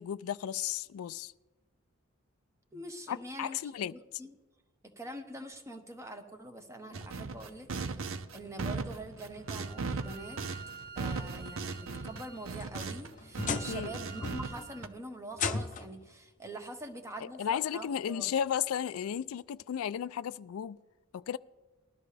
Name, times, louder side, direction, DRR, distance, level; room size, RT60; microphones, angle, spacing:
voice 1, 0.0-1.3 3.1-3.9 13.7-13.9 17.4-20.8 21.1-21.4, left 9 dB, 85° left, 0.3 m, -34 dB
voice 2, 2.7-4.3 4.8-10.4 10.9-18.3, right 1 dB, 15° right, 1.0 m, -45 dB
sound 1, 6.9-13.1 13.3-14.9, right 4 dB, 75° right, 0.7 m, -38 dB
Bowed string instrument, 9.4-14.8, right 6 dB, 55° right, 1.9 m, -49 dB
sound 2, 12.3-13.9 14.2-14.7 15.3-16.0 17.2-17.3 17.9-18.0 19.6-19.7, left 5 dB, 35° left, 0.6 m, -36 dB
20.0 x 13.0 x 3.3 m
head